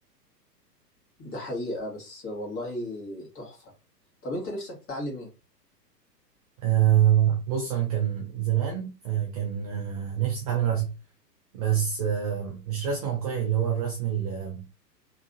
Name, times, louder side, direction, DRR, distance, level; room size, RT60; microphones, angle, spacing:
voice 1, 1.2-3.7 4.2-5.3, left 1 dB, 25° left, 1.8 m, -35 dB
voice 2, 6.6-10.9 11.5-14.7, right 10 dB, 25° right, 0.4 m, -26 dB
3.6 x 3.1 x 2.5 m
hypercardioid pair, 115°, 50 cm